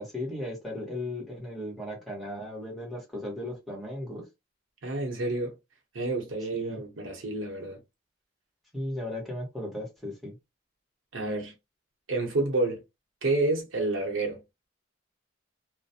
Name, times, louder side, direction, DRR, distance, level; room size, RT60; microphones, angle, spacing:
voice 1, 0.0-4.2 6.5-6.8 8.7-10.3, left 1 dB, ahead, 1.1 m, -36 dB
voice 2, 4.8-5.5 5.9-7.8 11.1-11.5 12.1-12.8 13.2-14.4, right 2 dB, 85° right, 0.8 m, -29 dB
2.4 x 2.1 x 2.7 m
head